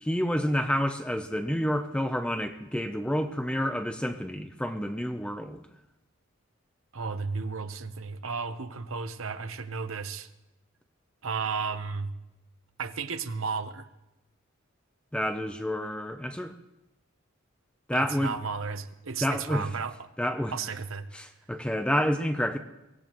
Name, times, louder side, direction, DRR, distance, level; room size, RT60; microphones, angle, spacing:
voice 1, 0.0-5.6 15.1-16.5 17.9-18.4 19.2-19.7 20.2-20.5 21.1-22.6, equal, 5° left, 7 dB, 0.6 m, -29 dB
voice 2, 6.9-10.3 11.2-12.1 12.8-13.9 17.9-20.1 20.5-21.1, right 5 dB, 80° right, 9 dB, 0.9 m, -33 dB
23.5 x 17.5 x 3.1 m, 0.94 s
head